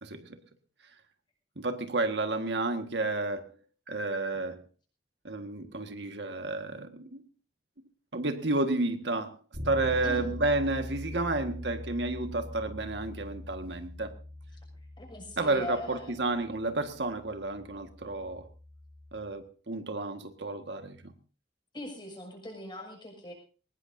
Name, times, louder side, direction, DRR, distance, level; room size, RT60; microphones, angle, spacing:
voice 1, 0.0-0.4 1.5-3.5 3.9-4.6 5.2-7.2 8.1-9.4 9.6-14.2 15.4-18.5 19.1-21.1, right 2 dB, 80° right, 7 dB, 1.7 m, -31 dB
Bass guitar, 9.5-19.3, left 1 dB, 55° right, 6.7 m, -43 dB
voice 2, 15.0-16.1 21.7-23.3, left 1 dB, 25° left, 2 dB, 6.4 m, -40 dB
21.5 x 19.5 x 2.7 m, 0.36 s
head